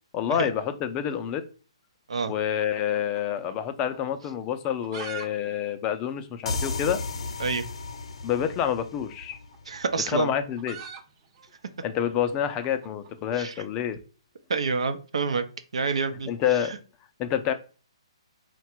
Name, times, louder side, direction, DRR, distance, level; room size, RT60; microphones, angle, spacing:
voice 1, 0.1-1.4 2.3-7.0 8.2-9.4 10.1-10.8 11.8-14.0 16.3-16.7 17.2-17.5, left 9 dB, 25° left, 9 dB, 0.4 m, -28 dB
sound 1, 2.3-3.7 3.9-4.0 4.5-5.3 5.5-5.6 5.9-6.0 6.6-6.7 7.8-8.0 9.2-13.4, right 7 dB, 35° right, 0.6 m, -43 dB
sound 2, 6.5-10.0, left 3 dB, 70° left, 0.6 m, -34 dB
voice 2, 9.7-10.3 13.4-13.5 14.5-15.4 15.7-16.3, right 4 dB, 75° right, 9 dB, 0.7 m, -27 dB
3.9 x 2.2 x 4.4 m, 0.36 s
hypercardioid pair, 150°, 3 cm